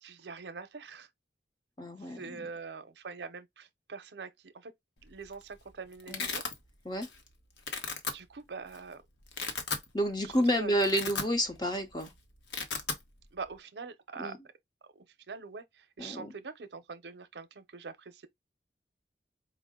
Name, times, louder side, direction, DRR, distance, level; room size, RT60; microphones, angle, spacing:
voice 1, 0.0-1.1 2.0-4.7 5.0-6.4 8.1-9.0 10.2-10.8 13.3-14.4 14.9-18.3, right 5 dB, 80° right, 0.6 m, -44 dB
voice 2, 1.8-2.4 6.1-6.2 6.8-7.1 9.9-12.1 14.2-14.4 16.0-16.3, equal, 25° left, 0.8 m, -30 dB
Domestic sounds home sounds, 5.1-5.4 5.7-6.5 7.0-7.3 7.6-8.1 8.7-8.8 9.2-9.9 10.3-10.4 10.7-11.7 11.9-12.1 12.3-13.0, left 4 dB, 85° left, 0.9 m, -35 dB
4.7 x 2.0 x 3.6 m
head